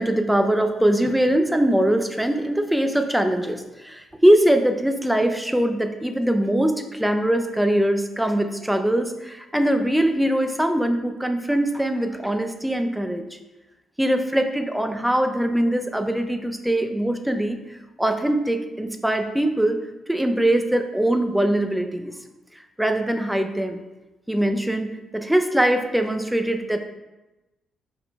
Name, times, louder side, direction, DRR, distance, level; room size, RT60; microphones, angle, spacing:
voice 1, 0.0-13.2 14.0-19.8 20.1-22.1 22.8-23.8 24.3-26.8, right 1 dB, 5° right, 7 dB, 0.4 m, -22 dB
4.9 x 4.8 x 2.2 m, 1.0 s
cardioid pair, 90°, 0 cm